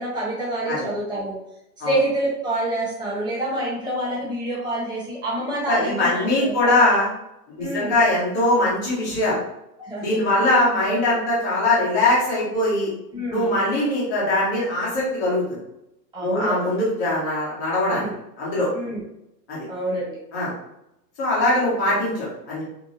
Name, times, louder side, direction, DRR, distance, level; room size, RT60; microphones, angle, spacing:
voice 1, 0.0-1.4 1.8-6.8 7.6-8.0 9.8-10.1 10.4-10.5 10.9-11.2 13.1-13.5 16.1-16.7 17.9-18.1 18.7-19.0 19.7-20.2, right 1 dB, 10° right, -5 dB, 0.9 m, -27 dB
voice 2, 5.7-7.1 7.6-9.4 10.0-12.9 13.3-15.6 16.2-18.1 18.4-18.7 19.5-19.7 20.3-20.5 21.2-22.6, left 1 dB, 15° left, -6 dB, 0.3 m, -21 dB
6.2 x 2.3 x 2.6 m, 0.84 s
supercardioid pair, 150°, 50 cm